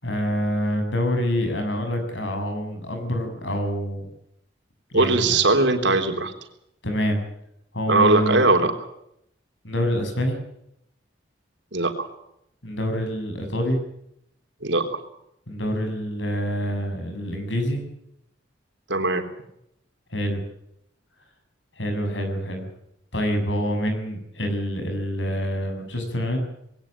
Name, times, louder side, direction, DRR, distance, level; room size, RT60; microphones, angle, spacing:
voice 1, 0.0-4.1 4.9-5.4 6.8-7.2 7.7-8.4 9.6-10.4 12.6-13.8 15.5-17.8 20.1-20.4 21.8-22.7 23.1-26.4, equal, 75° left, 6 dB, 7.2 m, -26 dB
voice 2, 4.9-6.3 7.9-8.7 11.7-12.1 14.6-14.9 18.9-19.3, right 3 dB, 70° right, 5 dB, 3.6 m, -20 dB
21.0 x 17.5 x 8.7 m, 0.76 s
head